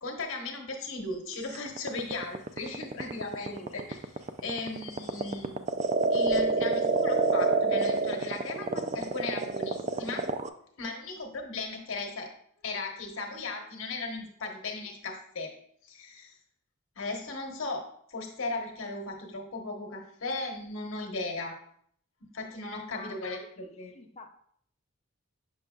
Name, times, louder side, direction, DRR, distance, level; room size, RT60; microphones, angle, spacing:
voice 1, 0.0-5.7 6.1-10.3 10.8-12.3 12.6-15.5 15.8-16.4 17.0-21.6 22.2-23.9, left 3 dB, 80° left, 2 dB, 1.1 m, -37 dB
sound 1, 1.5-10.5, right 4 dB, 35° right, 0.3 m, -27 dB
voice 2, 3.5-3.8 22.8-24.3, left 2 dB, 30° left, 5 dB, 0.5 m, -48 dB
6.4 x 6.4 x 2.3 m, 0.64 s
head